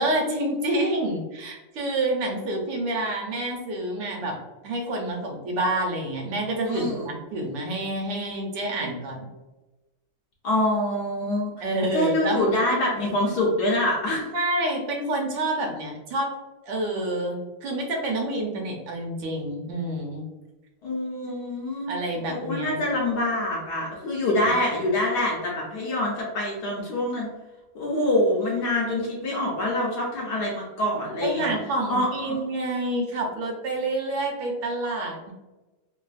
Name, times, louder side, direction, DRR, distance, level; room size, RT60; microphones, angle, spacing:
voice 1, 0.0-4.4 4.6-9.3 11.6-12.5 14.3-16.3 16.7-20.2 21.9-22.8 24.4-24.5 31.2-35.3, right 1 dB, 75° right, 0 dB, 1.3 m, -28 dB
voice 2, 6.6-7.1 10.4-11.5 11.9-14.3 20.8-21.9 22.3-27.3 27.7-31.5 31.9-32.4, left 1 dB, 70° left, -3 dB, 1.0 m, -25 dB
3.3 x 2.3 x 2.3 m, 1.1 s
omnidirectional pair, 2.2 m